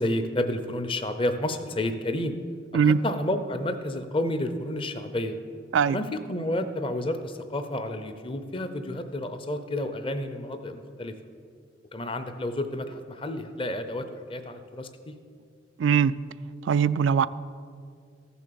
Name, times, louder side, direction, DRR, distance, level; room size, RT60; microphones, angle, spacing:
voice 1, 0.0-2.4 2.8-5.4 5.9-11.1 11.9-15.1, left 1 dB, 25° left, 9 dB, 0.7 m, -30 dB
voice 2, 15.8-16.1 16.6-17.3, right 7 dB, 75° right, 16 dB, 0.3 m, -21 dB
14.5 x 7.0 x 6.9 m, 2.3 s
head